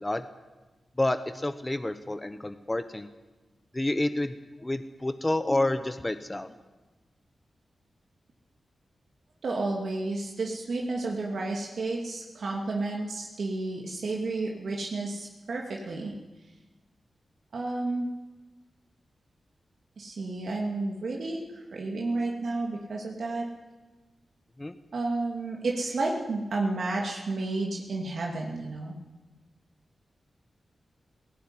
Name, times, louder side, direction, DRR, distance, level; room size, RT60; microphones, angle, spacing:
voice 1, 1.0-3.1 3.7-4.3 4.6-6.5 24.6-24.7, left 1 dB, 20° left, 9 dB, 1.1 m, -29 dB
voice 2, 9.4-16.1 17.5-18.1 20.0-23.4 24.9-28.9, right 2 dB, 70° right, -1 dB, 2.7 m, -31 dB
18.0 x 17.0 x 9.8 m, 1.2 s
cardioid pair, 75°, 0 cm